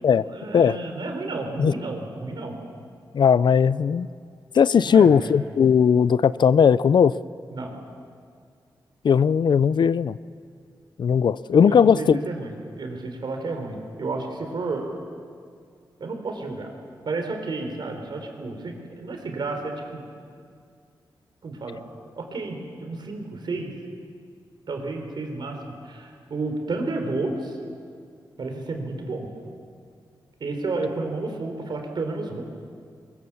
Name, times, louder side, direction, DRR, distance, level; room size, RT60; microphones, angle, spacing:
voice 1, 0.2-2.6 4.8-5.3 7.5-7.7 11.7-14.9 16.0-16.7 17.0-20.1 21.4-21.8 22.2-23.7 24.7-27.6 28.4-29.3 30.4-32.4, right 3 dB, 65° right, 4 dB, 3.7 m, -31 dB
voice 2, 3.1-4.1 4.5-7.1 9.0-10.2 11.0-12.2, left 7 dB, 65° left, 17 dB, 0.5 m, -18 dB
22.5 x 20.5 x 7.3 m, 2.2 s
wide cardioid pair, 100°, 8 cm